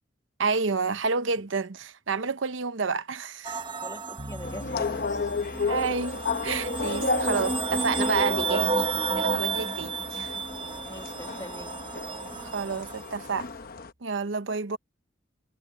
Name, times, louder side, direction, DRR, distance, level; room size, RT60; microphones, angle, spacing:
voice 1, 0.4-3.6 5.6-10.4 12.4-13.5 14.0-14.8, right 5 dB, 85° right, 0.9 m, -30 dB
sound 1, 3.4-13.2, right 3 dB, 25° right, 1.0 m, -32 dB
voice 2, 3.8-5.3 7.5-7.8 10.9-11.7, left 1 dB, 15° left, 1.5 m, -43 dB
Bass guitar, 4.2-13.8, equal, 45° right, 3.2 m, -47 dB
sound 2, 4.4-13.9, left 4 dB, 50° left, 0.9 m, -33 dB
head